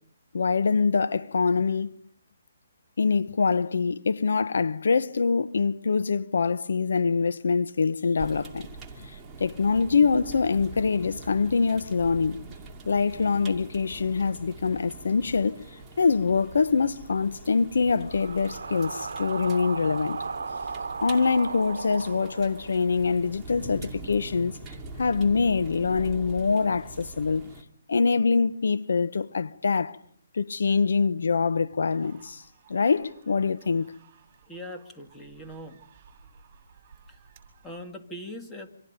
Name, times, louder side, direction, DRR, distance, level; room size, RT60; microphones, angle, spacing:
voice 1, 0.3-1.9 3.0-8.7 9.0-9.1 9.4-12.4 12.8-15.6 16.0-20.2 21.0-24.6 25.0-27.5 27.9-30.0 30.3-32.4 32.7-33.9, left 5 dB, 75° left, 1.1 m, -24 dB
sound 1, 8.2-27.6, right 3 dB, 10° right, 2.6 m, -43 dB
sound 2, 17.0-23.1, right 4 dB, 85° right, 1.0 m, -36 dB
sound 3, 31.8-37.9, right 6 dB, 35° right, 7.1 m, -57 dB
voice 2, 34.5-35.8 37.1-37.2 37.6-38.7, equal, 5° left, 2.1 m, -41 dB
29.0 x 26.5 x 5.2 m
hypercardioid pair, 160°, 0 cm